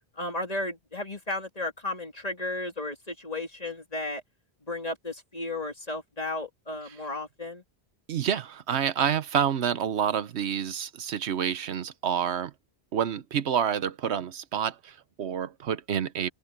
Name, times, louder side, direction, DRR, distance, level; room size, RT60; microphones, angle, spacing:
voice 1, 0.1-4.2 4.7-7.6, left 2 dB, 35° left, 3.1 m, -34 dB
voice 2, 8.1-12.5 12.9-16.3, right 8 dB, 90° right, 1.1 m, -28 dB
omnidirectional pair, 1.1 m